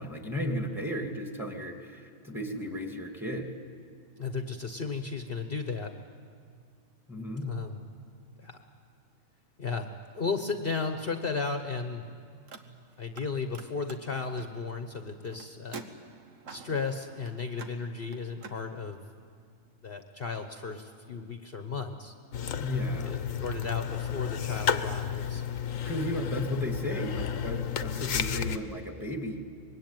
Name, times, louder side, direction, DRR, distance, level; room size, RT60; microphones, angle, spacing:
voice 1, 0.0-3.5 7.1-7.5 22.6-23.2 25.9-29.4, equal, ahead, 3 dB, 2.3 m, -34 dB
voice 2, 4.2-5.9 7.4-7.8 8.4-8.6 9.6-9.9 10.1-12.0 13.0-15.8 16.5-19.0 19.8-22.1 23.0-25.4, left 4 dB, 45° left, 6 dB, 1.2 m, -34 dB
Car, 12.4-13.3 13.5-18.6, right 4 dB, 75° right, 1.6 m, -48 dB
sound 1, 22.3-28.6, left 8 dB, 80° left, 1.3 m, -32 dB
25.0 x 21.5 x 9.1 m, 2.2 s
omnidirectional pair, 1.4 m